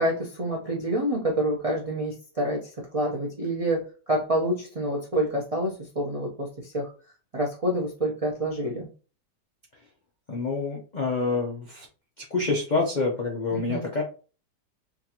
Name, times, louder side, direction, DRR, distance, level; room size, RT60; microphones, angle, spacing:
voice 1, 0.0-6.9 7.3-8.9 13.5-13.8, right 1 dB, 55° right, -3 dB, 0.3 m, -27 dB
voice 2, 10.3-11.9 12.2-14.0, left 3 dB, 75° left, -1 dB, 0.4 m, -27 dB
3.7 x 2.4 x 2.8 m, 0.36 s
omnidirectional pair, 1.8 m